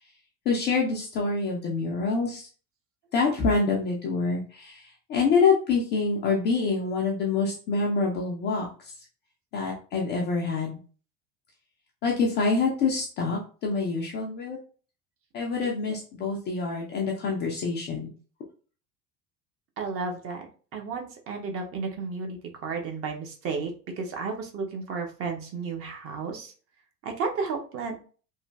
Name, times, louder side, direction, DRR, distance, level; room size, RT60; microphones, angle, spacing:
voice 1, 0.5-2.5 3.1-8.9 9.5-10.8 12.0-14.6 15.3-18.1, left 4 dB, 25° left, -2 dB, 0.3 m, -26 dB
voice 2, 19.8-20.4 20.7-22.4 22.6-23.7 24.0-26.5 27.1-27.9, right 4 dB, 30° right, 3 dB, 0.5 m, -32 dB
3.1 x 2.5 x 2.2 m, 0.39 s
figure-of-eight pair, 65°, 48 cm